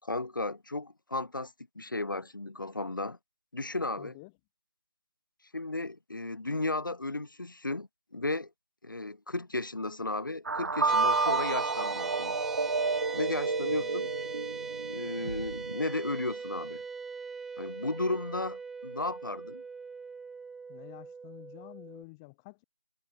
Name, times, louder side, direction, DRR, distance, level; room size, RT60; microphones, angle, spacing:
voice 1, 0.0-3.2 3.5-4.2 5.5-8.5 8.8-12.4 13.1-14.1 14.8-16.8 17.6-19.6, left 2 dB, 75° left, 4.6 m, -34 dB
voice 2, 4.0-4.3 13.6-13.9 20.7-22.6, left 27 dB, 15° left, 4.6 m, -50 dB
sound 1, 10.4-15.7, right 4 dB, 60° right, 0.6 m, -30 dB
sound 2, 10.9-22.0, right 5 dB, ahead, 1.0 m, -40 dB
figure-of-eight pair, 165°, 11 cm